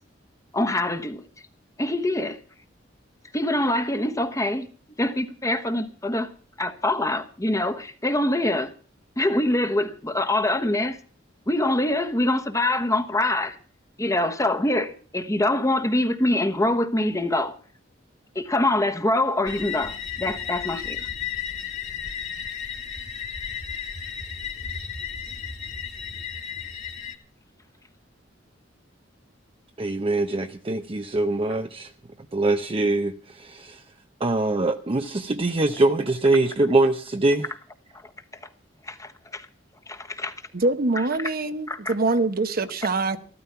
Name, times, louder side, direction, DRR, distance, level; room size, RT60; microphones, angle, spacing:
voice 1, 0.5-1.2 1.8-2.4 3.3-4.7 5.0-6.3 6.6-8.7 9.2-11.0 11.5-13.6 14.0-17.5 18.3-21.0 38.9-39.5 39.9-40.3 41.0-41.3 41.7-41.9, left 1 dB, 15° left, 1.2 m, -24 dB
sound 1, 19.5-27.2, left 7 dB, 40° left, 1.9 m, -34 dB
voice 2, 29.8-31.9 32.3-33.8 34.2-37.5, right 2 dB, 30° right, 0.7 m, -23 dB
voice 3, 40.5-43.2, right 3 dB, 50° right, 1.0 m, -24 dB
14.0 x 13.0 x 5.7 m
head